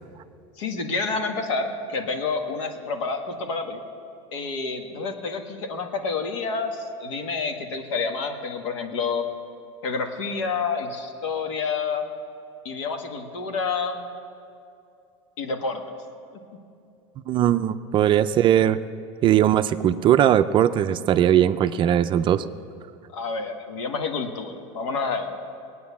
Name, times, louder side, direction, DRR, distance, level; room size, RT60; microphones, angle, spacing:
voice 1, 0.6-3.8 4.3-9.2 9.8-12.1 12.6-14.0 15.4-16.0 23.1-25.3, left 4 dB, 85° left, 4 dB, 1.8 m, -29 dB
voice 2, 17.3-18.8 19.2-22.4, right 11 dB, 30° right, 11 dB, 0.4 m, -19 dB
19.5 x 9.5 x 7.1 m, 2.5 s
supercardioid pair, 140°, 15 cm